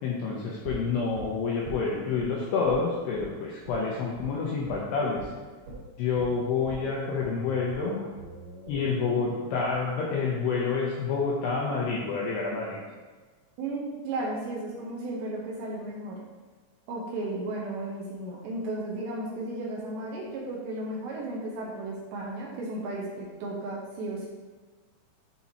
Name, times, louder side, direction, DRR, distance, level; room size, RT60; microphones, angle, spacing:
voice 1, 0.0-5.3 6.0-8.0 8.7-12.8, left 4 dB, 85° left, -4 dB, 2.4 m, -28 dB
sound 1, 0.6-2.3 2.6-2.8 3.1-3.3 3.6-3.8 4.2-4.3 4.7-4.8 5.2-5.3 5.7-11.6 11.9-12.0, right 2 dB, 55° right, 3.0 m, -44 dB
voice 2, 13.6-16.2 16.9-24.3, right 2 dB, 75° right, -4 dB, 3.0 m, -34 dB
11.0 x 4.2 x 3.0 m, 1.4 s
omnidirectional pair, 5.6 m